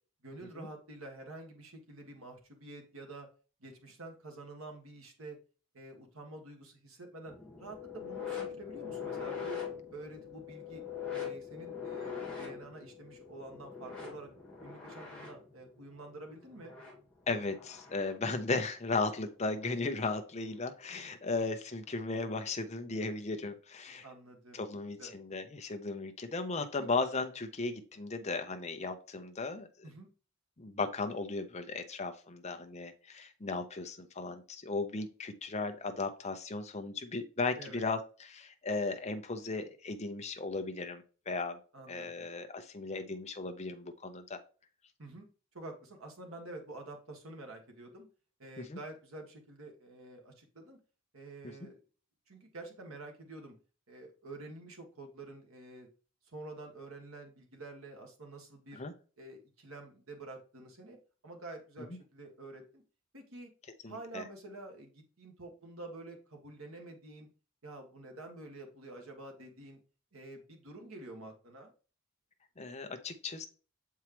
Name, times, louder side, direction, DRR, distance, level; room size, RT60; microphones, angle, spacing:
voice 1, 0.2-3.3 3.6-5.4 5.7-9.6 9.9-10.8 11.1-14.3 14.6-16.7 24.0-24.6 25.0-25.2 26.8-26.9 29.8-30.1 37.5-37.9 41.7-42.3 45.0-45.3 45.5-48.1 48.4-50.8 51.1-51.8 52.3-53.5 53.9-55.9 56.3-58.8 59.2-61.0 61.2-62.8 63.1-63.5 63.9-67.3 67.6-69.8 70.1-71.7, right 2 dB, 90° right, 2 dB, 1.7 m, -48 dB
sound 1, 7.3-18.2 19.5-19.7 20.7-20.8, left 7 dB, 5° left, 1.9 m, -43 dB
voice 2, 17.3-24.1 24.5-29.7 30.6-41.6 41.9-44.4 48.6-48.8 51.4-51.5 58.7-58.9 63.8-64.3 72.6-73.5, left 3 dB, 30° left, 7 dB, 0.7 m, -36 dB
7.2 x 4.6 x 3.0 m, 0.37 s
head